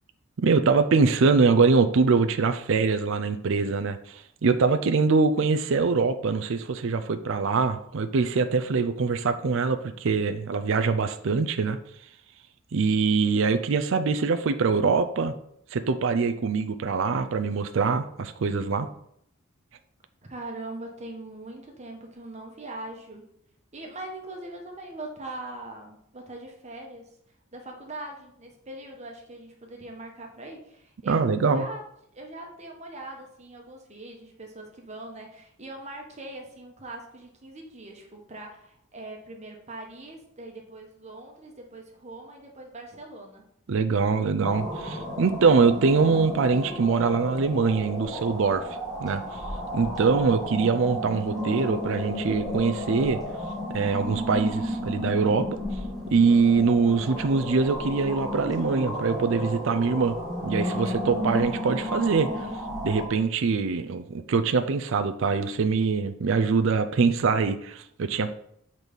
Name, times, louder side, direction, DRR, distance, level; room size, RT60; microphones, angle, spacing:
voice 1, 0.4-11.8 12.7-15.3 15.7-18.9 31.1-31.7 43.7-48.7 49.0-49.2 49.7-53.2 53.7-55.5 56.1-60.2 60.4-62.5 62.8-68.3, right 4 dB, 60° right, 9 dB, 0.4 m, -23 dB
voice 2, 20.3-23.3 23.7-27.2 27.5-31.8 32.1-43.4, right 2 dB, 30° right, 1 dB, 1.2 m, -41 dB
sound 1, 44.4-63.0, left 1 dB, ahead, 1.9 m, -33 dB
6.2 x 4.1 x 5.2 m, 0.72 s
head